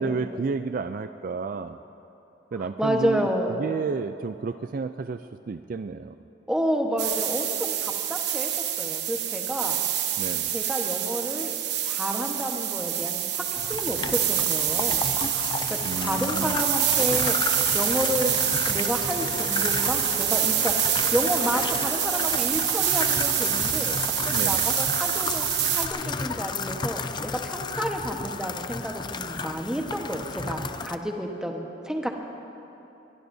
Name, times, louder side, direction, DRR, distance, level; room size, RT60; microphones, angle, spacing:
voice 1, 0.0-1.8 2.5-5.2 5.5-6.1 10.2-10.6 15.8-16.6 24.3-24.6, right 4 dB, 50° right, 10 dB, 0.3 m, -31 dB
voice 2, 2.6-3.6 6.5-8.5 8.8-9.8 10.5-11.5 11.8-13.4 13.7-15.0 15.7-18.3 18.7-24.0 24.2-25.5 25.7-32.1, equal, 5° right, 1 dB, 1.2 m, -30 dB
sound 1, 7.0-25.9, right 10 dB, 70° right, 1.0 m, -26 dB
sound 2, 13.5-31.0, left 4 dB, 25° left, 0.5 m, -33 dB
sound 3, 16.8-22.5, left 1 dB, 45° left, 2.0 m, -43 dB
23.5 x 21.5 x 2.7 m, 2.9 s
head